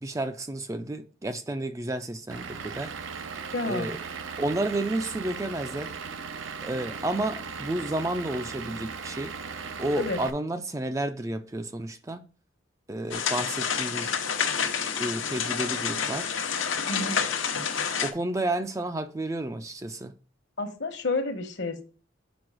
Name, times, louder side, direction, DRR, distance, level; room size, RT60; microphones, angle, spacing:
voice 1, 0.0-2.9 3.6-4.0 4.4-5.9 6.6-9.3 9.8-12.2 12.9-14.2 15.0-16.3 18.0-20.1, right 1 dB, 15° right, 0.4 m, -31 dB
Vehicle / Engine, 2.3-10.3, right 5 dB, 85° right, 0.7 m, -38 dB
voice 2, 3.5-3.9 10.0-10.2 16.9-17.2 20.6-21.8, left 3 dB, 65° left, 1.1 m, -30 dB
sound 1, 13.1-18.1, left 7 dB, 85° left, 0.9 m, -28 dB
6.1 x 4.8 x 4.8 m
head